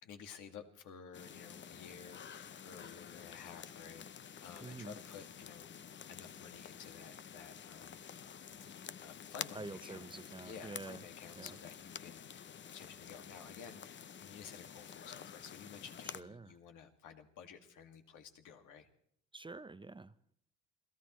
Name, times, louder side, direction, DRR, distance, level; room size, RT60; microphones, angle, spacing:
voice 1, 0.0-5.7 6.1-8.0 9.0-10.1 10.4-18.9, left 7 dB, 85° left, 2.1 m, -53 dB
sound 1, 1.1-16.2, left 8 dB, 40° left, 0.6 m, -50 dB
voice 2, 4.6-5.0 9.5-11.0 11.4-11.6 16.0-16.6 19.3-20.3, right 3 dB, 15° right, 0.6 m, -48 dB
27.5 x 16.5 x 3.1 m
cardioid pair, 90°, 30 cm